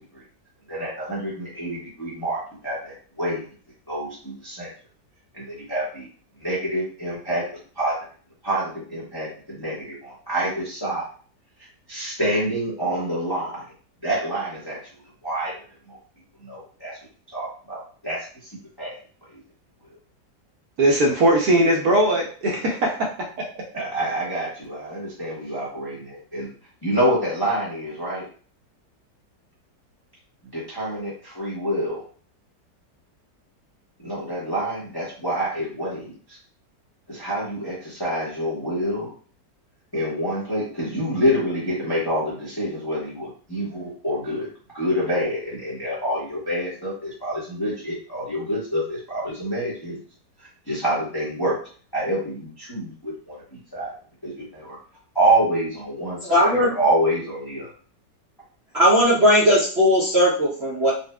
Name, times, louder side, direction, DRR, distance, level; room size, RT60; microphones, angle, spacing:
voice 1, 0.7-3.4 3.9-4.7 5.3-6.1 6.4-7.4 7.7-8.0 8.4-11.1 11.9-13.6 14.0-14.8 15.2-16.0 16.4-17.0 17.3-18.5 18.8-18.9 19.3-19.4 23.7-26.5 26.8-28.3 30.5-32.0 34.0-36.4 37.1-39.1 39.9-44.5 44.7-50.0 50.4-51.6 51.9-53.9 54.2-54.8 55.1-57.7, right 1 dB, 20° left, -7 dB, 0.7 m, -27 dB
voice 2, 20.8-23.1 23.5-23.6, right 1 dB, 65° right, 0 dB, 1.2 m, -19 dB
voice 3, 56.2-56.7 58.7-60.9, equal, 50° right, -7 dB, 0.8 m, -18 dB
4.2 x 2.3 x 2.2 m, 0.42 s
omnidirectional pair, 1.9 m